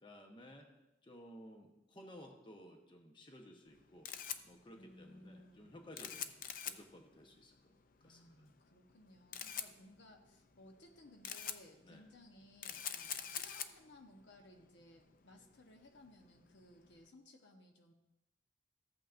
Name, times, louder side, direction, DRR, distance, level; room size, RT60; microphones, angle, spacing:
voice 1, 0.0-0.7 1.0-4.1 4.4-6.3 6.7-7.7 8.0-8.3 11.8-12.0, equal, 25° left, 2 dB, 1.0 m, -56 dB
Camera, 3.7-17.0, left 9 dB, 50° left, 0.5 m, -47 dB
voice 2, 4.8-6.5 8.0-17.9, left 1 dB, 75° left, 3 dB, 1.1 m, -61 dB
14.0 x 8.4 x 2.6 m, 0.91 s
head